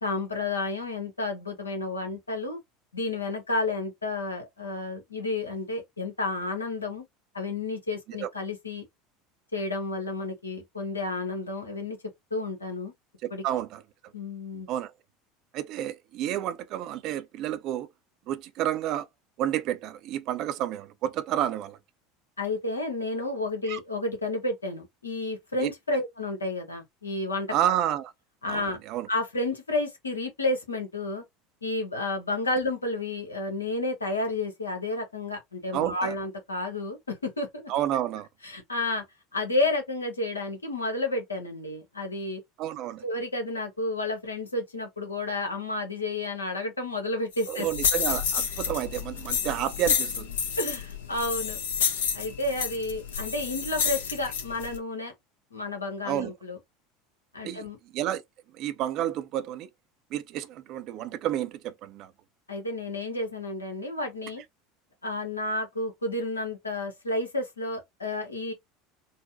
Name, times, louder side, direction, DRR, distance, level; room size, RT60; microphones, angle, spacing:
voice 1, 0.0-2.6 2.9-7.0 7.3-8.9 9.5-12.0 12.3-12.9 13.3-13.4 14.1-14.7 22.4-27.5 28.4-28.8 29.1-31.2 31.6-37.7 38.4-39.0 39.3-42.4 43.0-47.7 50.6-51.6 52.1-55.1 55.5-56.6 57.3-57.8 62.5-64.4 65.0-68.5, left 2 dB, 85° left, 1.1 m, -31 dB
voice 2, 13.2-13.8 14.7-14.9 15.5-17.9 18.3-19.1 19.4-21.8 23.7-23.8 25.6-25.7 27.5-28.1 28.5-28.6 28.9-29.1 35.7-36.1 37.7-38.3 42.6-43.0 47.5-50.3 56.0-56.3 57.4-57.6 57.9-58.2 58.6-59.7 60.1-62.1, right 11 dB, 50° right, 0.5 m, -30 dB
sound 1, 47.3-54.8, left 7 dB, 70° left, 0.7 m, -30 dB
3.9 x 2.1 x 2.7 m
figure-of-eight pair, 75°, 0 cm